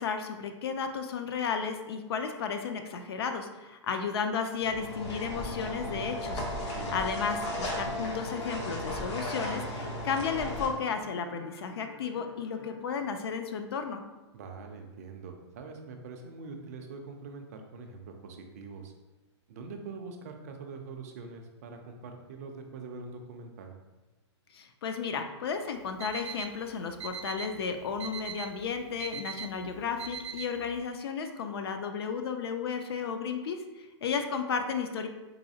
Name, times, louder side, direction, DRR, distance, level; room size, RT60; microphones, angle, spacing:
voice 1, 0.0-14.0 24.5-35.1, left 6 dB, 55° left, 7 dB, 0.4 m, -33 dB
sound 1, 4.6-10.7, left 1 dB, 70° left, 1.0 m, -35 dB
voice 2, 6.7-7.0 14.3-18.9 19.5-23.8, right 4 dB, 35° right, 4 dB, 0.4 m, -44 dB
sound 2, 9.9-13.8, left 4 dB, 30° left, 0.8 m, -53 dB
Alarm, 25.8-30.8, right 7 dB, 80° right, 0.6 m, -42 dB
4.0 x 2.7 x 2.7 m, 1.1 s
hypercardioid pair, 160°, 15 cm